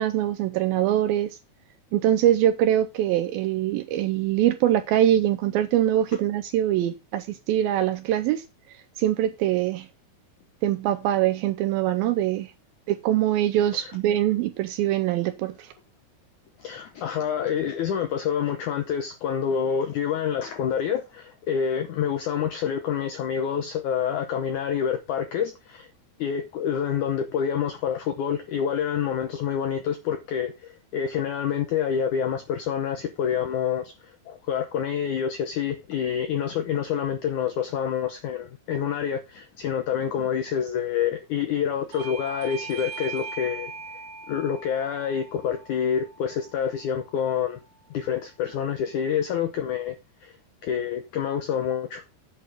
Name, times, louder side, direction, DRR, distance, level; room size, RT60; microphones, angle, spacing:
voice 1, 0.0-1.4 1.9-8.4 9.0-9.9 10.6-12.5 12.9-15.7, right 12 dB, 80° right, 2.2 m, -23 dB
voice 2, 16.6-25.9 26.2-33.9 34.3-43.7 44.3-47.6 47.9-49.9 50.2-50.4 50.6-52.0, left 8 dB, 80° left, 1.7 m, -27 dB
Bell / Doorbell, 41.9-47.1, right 5 dB, 65° right, 3.2 m, -40 dB
8.5 x 6.3 x 5.2 m
omnidirectional pair, 4.7 m